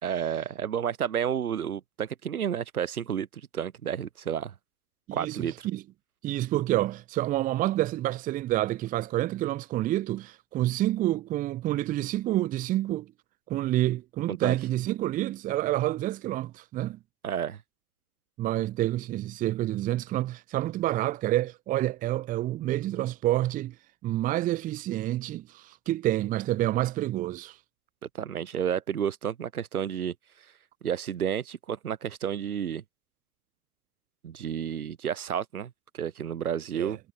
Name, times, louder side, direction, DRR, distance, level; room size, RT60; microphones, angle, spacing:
voice 1, 0.0-3.3 3.5-4.5 5.1-5.7 14.3-14.6 17.2-17.6 28.1-30.1 30.8-32.8 34.2-37.0, right 8 dB, 60° right, 3.2 m, -31 dB
voice 2, 5.1-5.8 6.2-13.1 13.5-17.0 18.4-23.7 24.0-27.6 36.7-37.0, right 15 dB, 15° right, 1.5 m, -28 dB
figure-of-eight pair, 130°, 49 cm